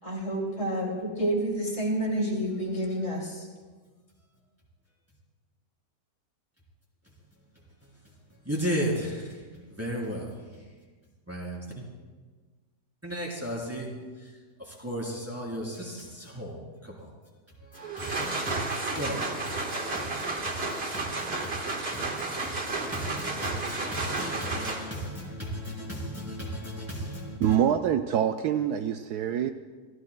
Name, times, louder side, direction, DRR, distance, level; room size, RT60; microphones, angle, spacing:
voice 1, 0.0-3.5, right 1 dB, 45° left, 3.1 m, -29 dB
voice 2, 8.4-10.7 11.3-11.8 13.0-13.9 14.2-14.3 14.6-17.1 17.6-27.6, equal, 10° right, 3.1 m, -35 dB
sound 1, 17.8-25.1, right 3 dB, 35° right, 1.6 m, -32 dB
voice 3, 27.4-29.5, right 9 dB, 75° right, 1.1 m, -25 dB
28.5 x 14.5 x 2.2 m
omnidirectional pair, 1.9 m